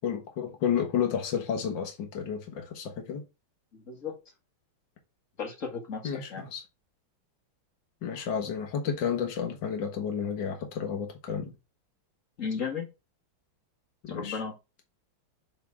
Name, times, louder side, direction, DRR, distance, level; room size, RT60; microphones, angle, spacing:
voice 1, 0.0-3.2 6.0-6.6 8.0-11.5 14.0-14.4, left 7 dB, 65° left, 2.1 m, -31 dB
voice 2, 3.7-4.2 5.4-6.4 12.4-12.9 14.1-14.5, left 5 dB, 40° left, 1.8 m, -35 dB
7.4 x 3.8 x 3.5 m
omnidirectional pair, 2.2 m